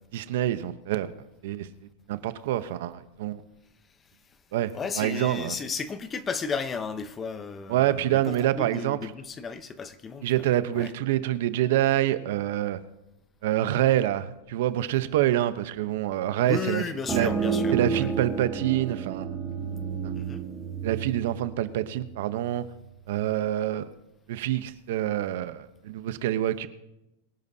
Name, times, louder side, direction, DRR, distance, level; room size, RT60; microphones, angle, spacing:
voice 1, 0.1-1.1 1.4-1.7 2.1-3.4 4.5-5.6 7.7-9.0 10.2-12.8 13.4-16.8 17.1-17.3 17.7-19.3 20.0-20.1 20.8-22.6 23.1-23.9 24.3-26.7, right 13 dB, 65° right, 0.8 m, -26 dB
voice 2, 4.7-10.3 10.8-10.9 16.4-18.1 20.1-20.4, left 5 dB, 20° left, 0.9 m, -34 dB
sound 1, 17.1-22.5, right 6 dB, 10° right, 1.6 m, -31 dB
23.0 x 10.5 x 2.8 m
hypercardioid pair, 130°, 0 cm